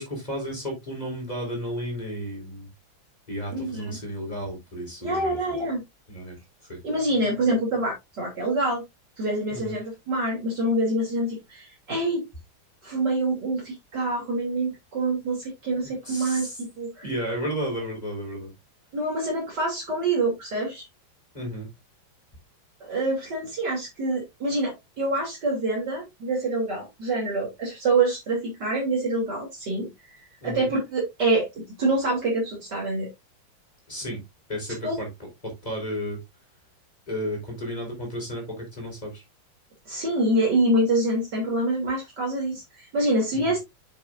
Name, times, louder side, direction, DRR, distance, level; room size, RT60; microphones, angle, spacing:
voice 1, 0.0-2.7 3.3-5.6 6.1-6.4 6.7-6.8 9.5-9.7 15.8-16.6 17.0-18.5 21.3-21.7 30.4-30.7 33.9-34.2 34.5-35.1 35.4-36.2 37.1-39.2 43.3-43.5, equal, 20° left, 0 dB, 4.6 m, -33 dB
voice 2, 3.5-4.0 5.0-5.8 6.8-8.8 9.2-12.2 12.8-17.1 18.9-20.9 22.8-30.2 30.4-33.1 34.8-34.9 39.9-43.6, right 2 dB, 55° right, -3 dB, 3.6 m, -26 dB
8.3 x 8.1 x 2.5 m, 0.20 s
omnidirectional pair, 2.3 m